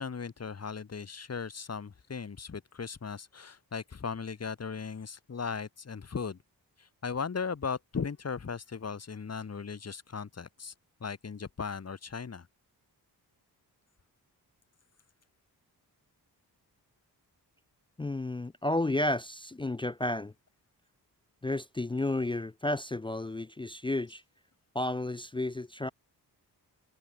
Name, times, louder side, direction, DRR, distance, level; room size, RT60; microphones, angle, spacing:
voice 1, 0.0-6.4 6.8-10.7 11.0-12.5, left 5 dB, 40° left, 1.5 m, -37 dB
voice 2, 18.0-20.3 21.4-24.2 24.7-25.9, left 2 dB, 15° left, 0.4 m, -32 dB
cardioid pair, 70°, 40 cm